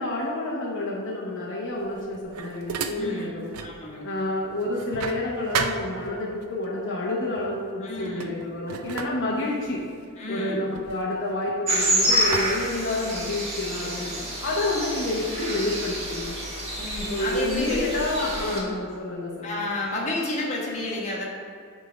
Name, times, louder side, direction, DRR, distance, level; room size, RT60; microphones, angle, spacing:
voice 1, 0.0-3.5 4.0-9.8 10.3-14.1 14.4-16.4 17.0-19.7, left 2 dB, 60° left, -4 dB, 1.0 m, -29 dB
sound 1, 1.8-3.8 4.2-6.5 7.3-7.6 7.9-11.8 12.3-13.5, right 5 dB, 80° right, 0.5 m, -35 dB
voice 2, 3.0-4.0 7.8-8.3 8.7-9.0 10.2-10.7 13.8-14.3 16.8-18.7 19.4-21.3, left 2 dB, 30° left, -4 dB, 1.4 m, -31 dB
sound 2, 11.7-18.6, right 1 dB, 30° right, 1.4 m, -28 dB
8.3 x 3.8 x 5.0 m, 2.3 s
head